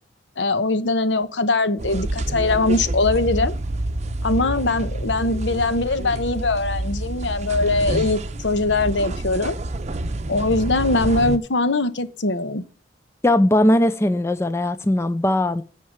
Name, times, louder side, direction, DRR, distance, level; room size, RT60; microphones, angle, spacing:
voice 1, 0.4-3.5 4.2-9.6 10.3-12.6, left 2 dB, 75° left, 1.0 m, -21 dB
sound 1, 1.8-11.4, right 2 dB, 40° right, 0.8 m, -28 dB
voice 2, 13.2-15.6, left 1 dB, 15° left, 0.4 m, -19 dB
9.5 x 5.8 x 7.4 m
head